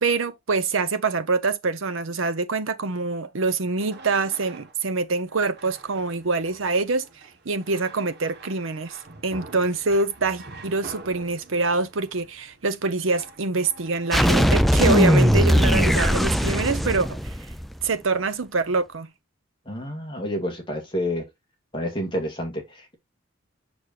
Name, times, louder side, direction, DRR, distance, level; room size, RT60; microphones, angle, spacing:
voice 1, 0.0-7.1 7.4-9.0 9.2-17.1 17.8-19.1, right 3 dB, 80° right, 0.8 m, -25 dB
sound 1, 3.5-15.9, right 2 dB, 55° right, 1.2 m, -45 dB
sound 2, 14.1-17.8, equal, ahead, 0.3 m, -19 dB
voice 2, 19.7-21.3 21.7-23.0, left 1 dB, 25° left, 2.2 m, -29 dB
6.7 x 6.3 x 2.5 m
head